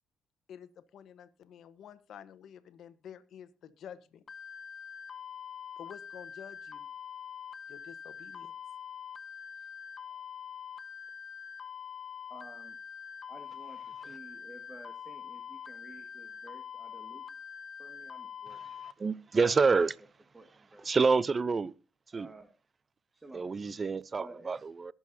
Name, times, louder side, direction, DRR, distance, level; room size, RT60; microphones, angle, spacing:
voice 1, 0.5-4.2 5.8-6.9 7.7-8.5 10.1-10.2, left 9 dB, 70° left, 1.1 m, -50 dB
sound 1, 4.3-18.9, left 7 dB, 45° left, 1.2 m, -44 dB
voice 2, 12.3-12.8 13.3-17.2 17.8-18.6 19.3-19.9 20.3-20.9 22.1-22.5 23.1-23.5 24.1-24.6, right 2 dB, 20° right, 1.9 m, -52 dB
voice 3, 19.0-19.9 20.8-21.7 22.1-22.3 23.3-24.9, right 4 dB, 35° right, 0.6 m, -27 dB
21.5 x 7.2 x 2.7 m
cardioid pair, 75°, 0 cm